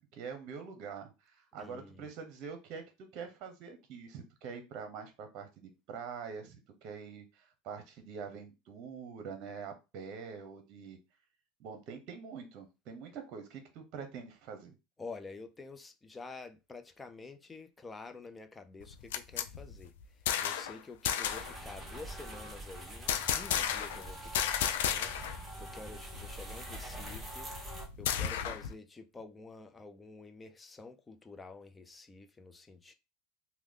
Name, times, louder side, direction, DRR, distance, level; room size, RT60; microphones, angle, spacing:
voice 1, 0.1-2.8 3.1-11.0 11.6-14.8, right 6 dB, 55° right, 0.9 m, -45 dB
voice 2, 1.6-2.1 15.0-19.9 20.4-27.5 28.0-32.9, left 3 dB, 15° left, 0.5 m, -49 dB
sound 1, 18.8-20.8 21.0-21.5 23.1-24.0 24.3-25.4 25.7-25.8 26.1-28.7, left 9 dB, 85° left, 0.4 m, -33 dB
sound 2, 21.2-27.9, right 1 dB, 15° right, 1.3 m, -45 dB
3.1 x 2.2 x 3.6 m
supercardioid pair, 120°, 0 cm